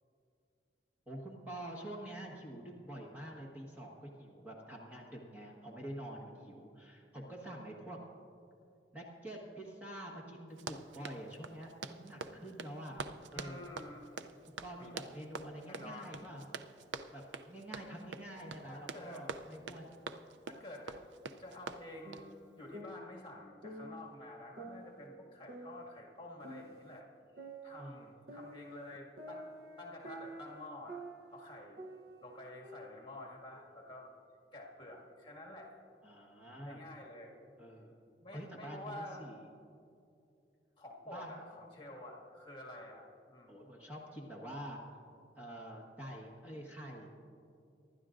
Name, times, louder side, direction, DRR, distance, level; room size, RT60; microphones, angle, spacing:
voice 1, 1.1-8.0 8.9-13.1 13.3-13.7 14.6-16.4 17.1-19.9 27.8-28.1 36.0-36.8 37.6-37.9 38.3-39.4 41.1-41.5 43.5-44.8 45.4-47.1, right 1 dB, 10° right, -4 dB, 1.4 m, -47 dB
Run, 10.5-22.3, right 4 dB, 90° right, 0.5 m, -46 dB
voice 2, 13.3-14.0 14.8-15.0 15.6-16.2 18.7-19.3 20.5-21.1 21.4-27.1 27.3-29.5 29.8-31.0 31.3-31.9 32.2-34.1 34.5-35.7 36.6-37.4 38.2-39.3 40.8-43.6, left 1 dB, 30° left, -1 dB, 2.0 m, -49 dB
sound 1, 22.0-24.1 24.6-27.0 27.4-31.5 31.8-33.8, right 1 dB, 55° right, 0.8 m, -50 dB
25.0 x 12.0 x 2.5 m, 2.6 s
head